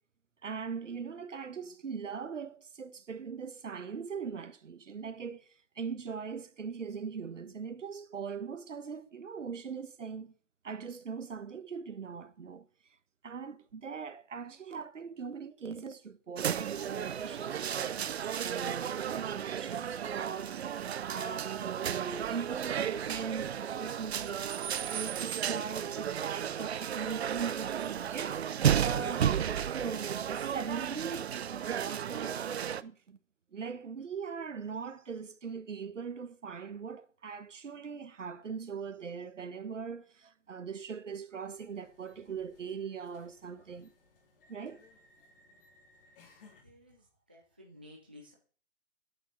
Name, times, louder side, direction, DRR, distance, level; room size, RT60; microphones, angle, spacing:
voice 1, 0.4-5.5 5.8-10.3 10.6-12.6 13.2-27.8 28.1-28.4 28.8-32.5 32.8-33.2 33.5-43.9 44.5-44.8, right 6 dB, 75° right, 1.4 m, -40 dB
sound 1, 16.4-32.8, right 9 dB, 60° right, 0.7 m, -33 dB
sound 2, 41.4-46.6, left 3 dB, 45° left, 2.5 m, -62 dB
voice 2, 46.6-48.3, left 1 dB, 10° right, 0.4 m, -55 dB
9.4 x 6.2 x 6.4 m
hypercardioid pair, 150°, 37 cm